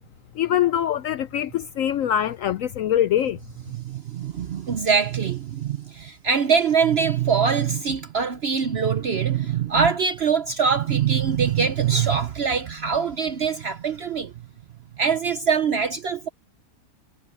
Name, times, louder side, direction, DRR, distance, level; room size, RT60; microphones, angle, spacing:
voice 1, 0.4-3.4, left 10 dB, 70° left, 0.8 m, -23 dB
voice 2, 3.7-14.3 15.0-16.3, right 6 dB, 55° right, 0.7 m, -23 dB
omnidirectional pair, 1.8 m